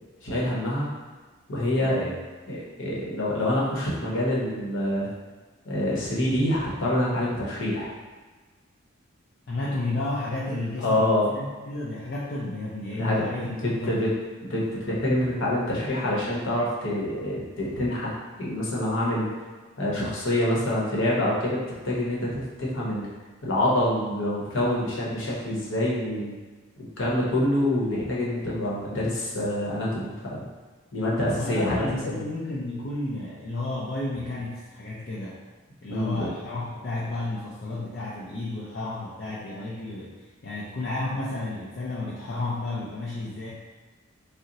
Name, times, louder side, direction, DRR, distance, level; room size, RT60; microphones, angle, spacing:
voice 1, 0.2-0.9 1.5-2.1 2.5-5.1 5.6-7.9 10.8-11.3 12.9-14.1 14.4-18.1 18.4-19.3 19.8-23.1 23.4-26.4 27.0-30.4 30.9-32.2 35.9-36.3, left 1 dB, 65° left, -5 dB, 0.8 m, -26 dB
voice 2, 1.7-2.2 9.5-14.1 31.3-35.4 35.8-40.1 40.4-43.5, left 2 dB, 50° left, -6 dB, 0.4 m, -32 dB
2.7 x 2.0 x 3.8 m, 1.3 s
head